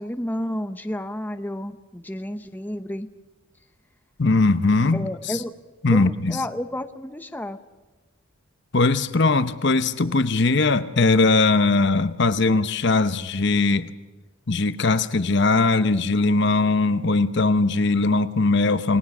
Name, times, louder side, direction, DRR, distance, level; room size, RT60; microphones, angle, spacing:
voice 1, 0.0-3.1 4.9-5.5 5.9-7.6, left 1 dB, 10° left, 8 dB, 0.8 m, -31 dB
voice 2, 4.2-5.4 5.8-6.4 8.7-13.9 14.5-19.0, left 3 dB, 55° left, 13 dB, 0.9 m, -20 dB
29.0 x 18.5 x 6.1 m, 1.2 s
head